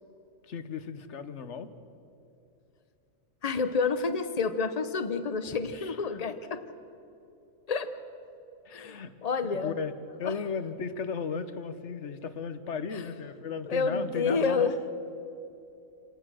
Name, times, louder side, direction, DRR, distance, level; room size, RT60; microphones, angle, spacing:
voice 1, 0.4-1.7 5.7-6.2 8.6-9.1 9.4-9.9 10.2-14.7, left 5 dB, 60° left, 12 dB, 1.3 m, -36 dB
voice 2, 3.4-6.6 7.7-7.9 8.7-9.8 10.2-10.3 12.9-13.1 13.7-14.7, left 4 dB, 30° left, 10 dB, 1.0 m, -29 dB
27.0 x 18.5 x 6.3 m, 2.8 s
omnidirectional pair, 1.4 m